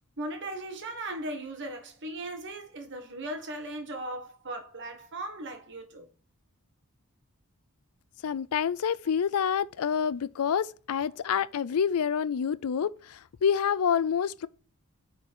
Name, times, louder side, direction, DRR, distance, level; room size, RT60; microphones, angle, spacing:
voice 1, 0.2-6.1, right 1 dB, 55° right, 1.6 m, -38 dB
voice 2, 8.2-14.5, left 7 dB, 70° left, 0.4 m, -27 dB
9.3 x 4.3 x 4.3 m
head